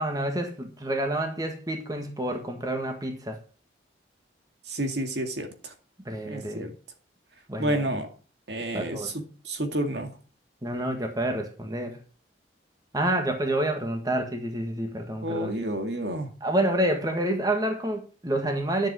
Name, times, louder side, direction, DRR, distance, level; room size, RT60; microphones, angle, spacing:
voice 1, 0.0-3.4 6.0-6.7 7.5-7.8 8.7-9.1 10.6-12.0 12.9-15.5 16.4-18.9, right 1 dB, 20° right, 1.6 m, -28 dB
voice 2, 4.7-5.7 6.2-6.7 7.6-8.1 8.5-10.1 15.2-16.3, right 1 dB, 65° right, 2.2 m, -30 dB
11.0 x 7.6 x 6.1 m
head